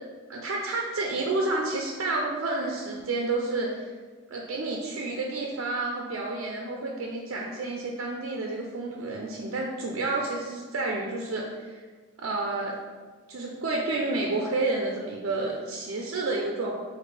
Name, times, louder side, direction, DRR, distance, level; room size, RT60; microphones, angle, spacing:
voice 1, 0.3-3.9 4.3-11.8 12.2-12.7 13.3-16.7, right 2 dB, 65° right, -1 dB, 0.4 m, -30 dB
4.1 x 2.6 x 3.3 m, 1.4 s
head